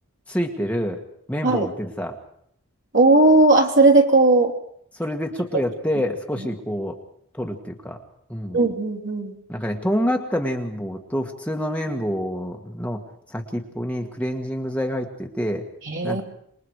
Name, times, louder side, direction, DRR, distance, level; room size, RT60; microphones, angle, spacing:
voice 1, 0.3-1.0 1.3-2.2 4.9-7.0 7.3-8.0 8.3-8.6 9.5-13.0 13.3-15.6 16.0-16.2, equal, 5° left, 2 dB, 1.7 m, -27 dB
voice 2, 2.9-4.5 6.4-6.5 8.5-9.3 15.9-16.2, right 2 dB, 55° right, 2 dB, 3.1 m, -17 dB
27.0 x 21.5 x 4.8 m, 0.68 s
head